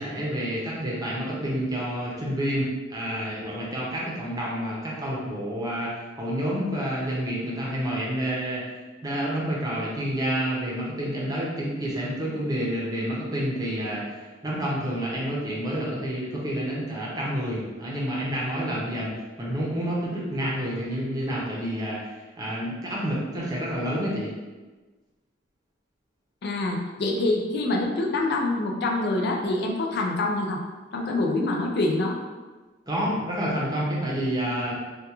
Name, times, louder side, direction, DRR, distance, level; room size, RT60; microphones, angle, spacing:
voice 1, 0.0-8.7 9.0-19.1 19.4-22.1 22.4-24.4 32.9-34.8, equal, 20° right, -5 dB, 0.7 m, -29 dB
voice 2, 26.4-30.6 30.9-32.2, left 2 dB, 60° left, 1 dB, 0.4 m, -25 dB
3.5 x 2.3 x 2.9 m, 1.3 s
head